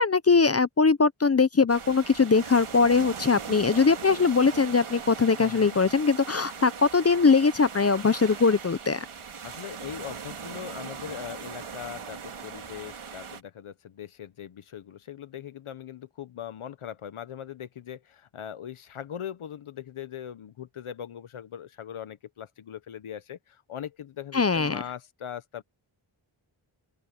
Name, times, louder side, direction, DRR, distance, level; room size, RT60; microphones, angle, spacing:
voice 1, 0.0-9.0 24.3-24.8, left 4 dB, 30° left, 0.7 m, -21 dB
sound 1, 1.7-13.4, right 6 dB, 80° right, 2.7 m, -40 dB
voice 2, 5.4-5.8 9.4-25.6, left 9 dB, 80° left, 1.0 m, -40 dB
open air
wide cardioid pair, 70°, 49 cm